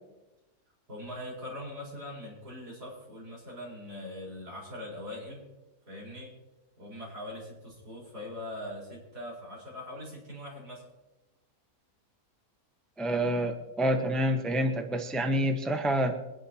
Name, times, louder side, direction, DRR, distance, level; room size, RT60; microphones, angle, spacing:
voice 1, 0.9-5.4 5.9-6.3 6.8-10.8, left 1 dB, 75° right, -4 dB, 5.1 m, -41 dB
voice 2, 13.0-16.1, equal, ahead, 4 dB, 0.9 m, -27 dB
23.5 x 10.5 x 2.9 m, 1.0 s
omnidirectional pair, 1.7 m